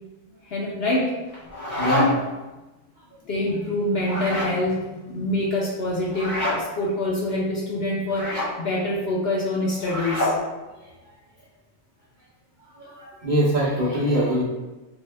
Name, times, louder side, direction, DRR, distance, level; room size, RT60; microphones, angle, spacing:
voice 1, 0.5-1.2 3.3-10.3, left 1 dB, 60° left, -4 dB, 0.7 m, -26 dB
sound 1, 1.3-2.3 4.0-4.6 6.1-6.6 8.1-8.5 9.8-10.4, left 1 dB, 15° left, 1.4 m, -26 dB
voice 2, 1.8-2.1 12.8-14.4, equal, 50° right, -7 dB, 0.6 m, -23 dB
3.2 x 2.7 x 3.3 m, 1.1 s
omnidirectional pair, 1.4 m